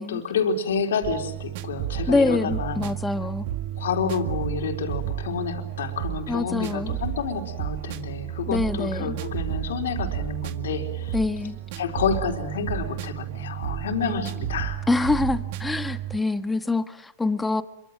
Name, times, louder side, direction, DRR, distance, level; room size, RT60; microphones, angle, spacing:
voice 1, 0.0-2.9 3.8-11.2 11.8-14.9, left 5 dB, 80° left, 4 dB, 4.1 m, -29 dB
sound 1, 1.0-16.2, right 11 dB, 55° right, 1.9 m, -32 dB
voice 2, 2.1-3.5 6.3-7.0 8.5-9.1 11.1-11.6 14.0-14.3 14.9-17.6, left 3 dB, 10° left, 10 dB, 1.6 m, -25 dB
27.0 x 25.0 x 7.6 m, 0.80 s
hypercardioid pair, 120°, 0 cm